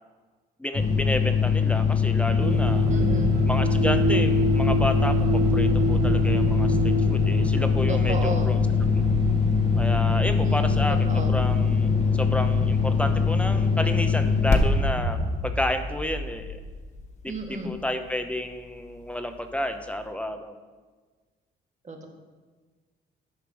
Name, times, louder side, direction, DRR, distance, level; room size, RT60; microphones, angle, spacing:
voice 1, 0.6-2.9 3.5-8.6 8.9-9.0 9.8-16.6 17.2-20.6, left 1 dB, 5° left, 7 dB, 0.8 m, -31 dB
sound 1, 0.7-17.1, left 6 dB, 35° left, 1.2 m, -23 dB
sound 2, 2.4-15.4, right 4 dB, 55° right, 0.4 m, -29 dB
voice 2, 2.9-3.3 7.9-8.5 10.4-11.4 17.2-17.8 21.8-22.1, right 2 dB, 35° right, 2 dB, 1.7 m, -33 dB
10.5 x 5.9 x 4.7 m, 1.4 s
cardioid pair, 90°, 20 cm